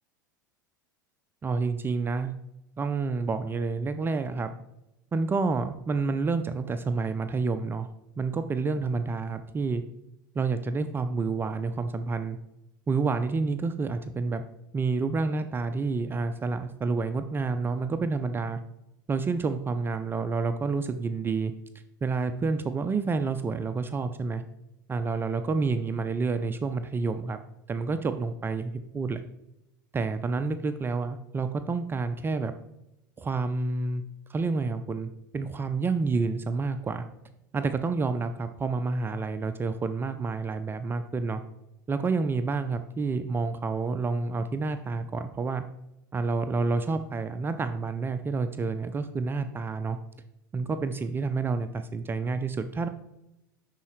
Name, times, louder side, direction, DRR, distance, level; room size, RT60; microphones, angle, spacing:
voice 1, 1.4-2.4 2.8-4.5 5.1-7.9 8.2-9.8 10.4-12.4 12.9-14.4 14.7-18.6 19.1-21.5 22.0-24.4 24.9-27.4 27.7-29.2 29.9-32.5 33.2-34.0 34.3-37.1 37.5-41.4 41.9-45.6 46.1-50.0 50.5-52.9, right 4 dB, 20° right, 9 dB, 0.4 m, -29 dB
11.0 x 4.1 x 3.1 m, 0.87 s
hypercardioid pair, 85°, 11 cm